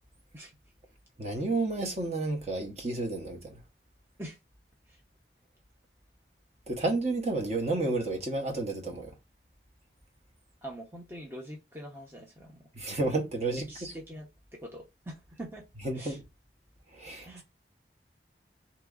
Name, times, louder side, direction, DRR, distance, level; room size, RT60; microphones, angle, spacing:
voice 1, 1.2-3.6 6.7-9.1 12.7-13.9 15.8-16.2 16.9-17.4, right 2 dB, 40° right, 0.9 m, -31 dB
voice 2, 10.6-12.6 13.7-15.6 15.9-16.2 17.2-17.4, right 1 dB, 15° right, 0.7 m, -44 dB
3.7 x 3.0 x 3.6 m
head